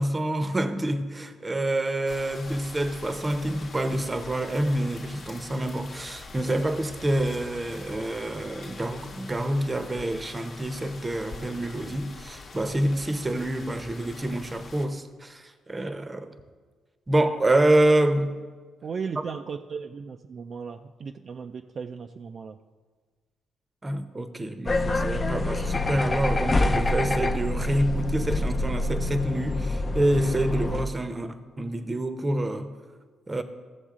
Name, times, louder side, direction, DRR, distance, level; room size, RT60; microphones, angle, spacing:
voice 1, 0.0-16.3 17.1-18.4 19.2-19.3 23.8-32.7 33.3-33.4, right 1 dB, 20° right, 0.7 m, -27 dB
sound 1, 2.1-14.9, left 3 dB, 50° left, 1.0 m, -44 dB
voice 2, 18.8-22.6, right 5 dB, 50° right, 0.4 m, -36 dB
sound 2, 24.7-30.9, left 2 dB, 30° left, 0.5 m, -26 dB
14.5 x 7.0 x 3.7 m
cardioid pair, 90°, 0 cm